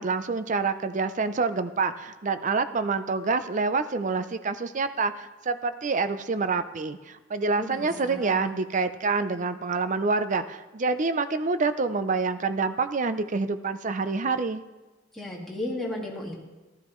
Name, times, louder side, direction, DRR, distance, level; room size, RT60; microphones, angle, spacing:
voice 1, 0.0-14.6, right 4 dB, 40° right, 11 dB, 0.5 m, -27 dB
voice 2, 7.5-8.5 15.1-16.4, left 1 dB, ahead, -4 dB, 1.9 m, -35 dB
15.0 x 12.5 x 3.1 m, 1.2 s
head